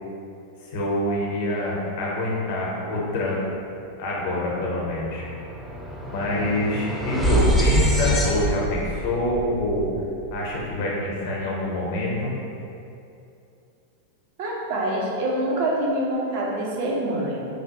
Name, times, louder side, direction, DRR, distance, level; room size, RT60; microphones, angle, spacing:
voice 1, 0.7-3.4 4.0-5.3 6.1-9.9 10.3-12.3, left 1 dB, 50° left, -4 dB, 0.6 m, -26 dB
sound 1, 4.1-4.2 4.5-10.8, right 1 dB, 5° left, 0.3 m, -26 dB
voice 2, 14.4-17.5, right 1 dB, 50° right, -3 dB, 0.5 m, -25 dB
3.3 x 2.2 x 2.7 m, 2.7 s
figure-of-eight pair, 90°, 0 cm